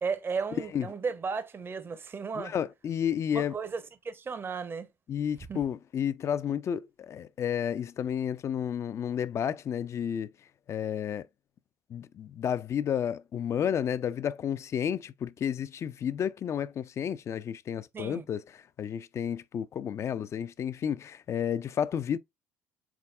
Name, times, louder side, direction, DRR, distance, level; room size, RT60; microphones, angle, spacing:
voice 1, 0.0-2.5 3.3-4.9 5.5-5.6 17.9-18.2, right 5 dB, 30° right, 0.6 m, -34 dB
voice 2, 2.4-3.6 5.1-10.3 10.7-11.3 11.9-22.2, left 8 dB, 40° left, 0.3 m, -31 dB
4.0 x 3.6 x 2.3 m
figure-of-eight pair, 55°, 8 cm